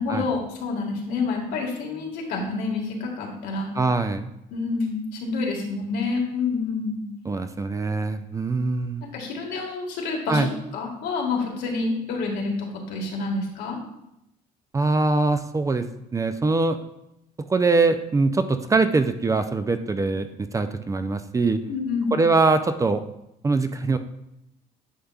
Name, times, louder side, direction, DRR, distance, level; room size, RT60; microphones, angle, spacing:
voice 1, 0.0-3.7 4.5-7.0 9.1-13.8 21.7-22.1, left 4 dB, 85° left, 0 dB, 1.7 m, -28 dB
voice 2, 3.7-4.3 7.3-9.0 10.3-10.5 14.7-15.9 16.1-16.8 17.5-21.6 22.1-23.0 23.4-24.0, right 3 dB, 20° right, 9 dB, 0.4 m, -22 dB
10.0 x 5.4 x 2.3 m, 0.83 s
cardioid pair, 110°, 17 cm